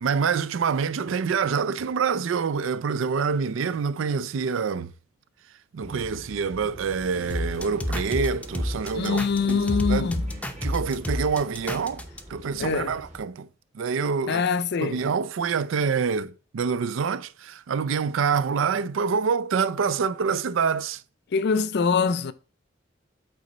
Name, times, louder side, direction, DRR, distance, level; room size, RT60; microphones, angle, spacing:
voice 1, 0.0-4.9 5.7-9.2 9.5-10.1 10.6-12.0 12.3-13.5 13.7-14.4 14.8-21.0, right 5 dB, 85° right, 0.4 m, -26 dB
sound 1, 5.8-13.2, right 1 dB, 35° right, 2.4 m, -44 dB
sound 2, 7.3-12.2, left 1 dB, 5° left, 0.6 m, -29 dB
voice 2, 8.9-10.3 12.6-13.0 14.3-15.1 21.3-22.3, left 5 dB, 60° left, 0.5 m, -24 dB
8.3 x 3.9 x 4.0 m
head